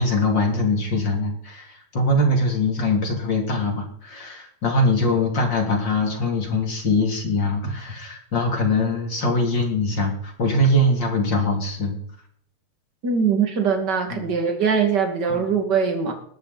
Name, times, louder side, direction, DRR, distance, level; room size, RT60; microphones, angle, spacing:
voice 1, 0.0-11.9 14.1-14.3 15.3-15.4, left 1 dB, 35° left, 1 dB, 4.0 m, -22 dB
voice 2, 13.0-16.1, right 6 dB, 35° right, 4 dB, 2.8 m, -22 dB
20.5 x 13.5 x 4.3 m, 0.66 s
omnidirectional pair, 3.5 m